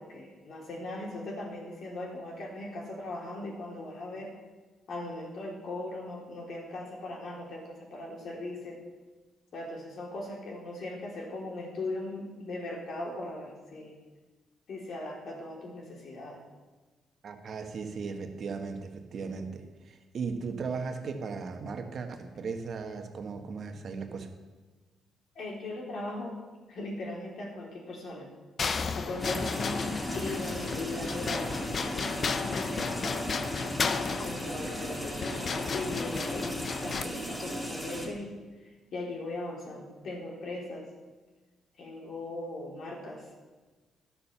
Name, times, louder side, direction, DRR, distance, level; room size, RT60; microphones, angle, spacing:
voice 1, 0.0-4.4 4.9-8.8 9.5-14.0 14.7-16.4 25.4-26.4 26.7-28.3 28.9-33.3 33.9-38.3 38.6-40.9 41.8-43.3, left 2 dB, 60° left, -1 dB, 3.8 m, -39 dB
voice 2, 17.2-24.3, right 5 dB, 55° right, 5 dB, 1.6 m, -37 dB
sound 1, 28.6-37.0, left 5 dB, 45° left, 0.7 m, -33 dB
sound 2, 29.2-38.1, equal, 10° left, 2.9 m, -37 dB
12.0 x 7.3 x 7.0 m, 1.3 s
cardioid pair, 90°, 0 cm